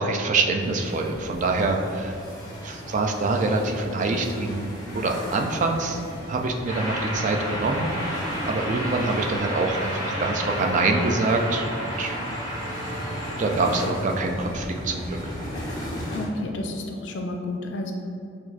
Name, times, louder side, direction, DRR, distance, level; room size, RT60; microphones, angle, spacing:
voice 1, 0.0-2.2 2.6-6.0 6.3-12.2 13.4-15.2, right 3 dB, 40° right, 3 dB, 0.3 m, -25 dB
sound 1, 0.6-16.3, equal, 20° left, 0.7 m, -37 dB
sound 2, 6.7-13.9, equal, 20° right, 0.8 m, -31 dB
voice 2, 16.1-17.9, left 2 dB, 65° left, 3 dB, 0.4 m, -31 dB
6.0 x 2.4 x 2.3 m, 2.6 s
head